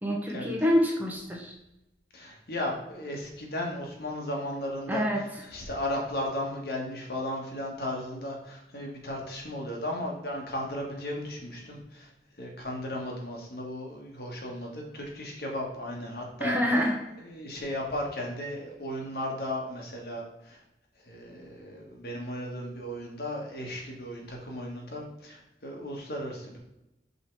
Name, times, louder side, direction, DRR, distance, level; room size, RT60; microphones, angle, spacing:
voice 1, 0.0-1.5 4.9-5.2 16.4-17.0, equal, 10° right, -1 dB, 1.1 m, -26 dB
voice 2, 2.1-5.1 5.5-12.1 12.4-16.6 17.2-20.6 21.1-26.6, left 1 dB, 60° left, 0 dB, 1.7 m, -35 dB
5.6 x 5.0 x 4.7 m, 0.88 s
head